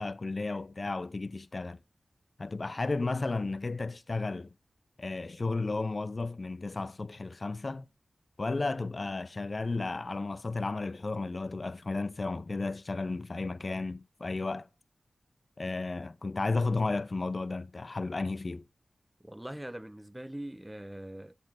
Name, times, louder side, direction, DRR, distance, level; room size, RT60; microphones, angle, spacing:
voice 1, 0.0-1.8 2.4-4.5 5.0-7.9 8.4-14.7 15.6-18.6, left 3 dB, 50° left, 0.4 m, -33 dB
voice 2, 19.2-21.3, right 1 dB, 10° right, 0.4 m, -42 dB
7.9 x 6.6 x 6.0 m
cardioid pair, 40°, 0 cm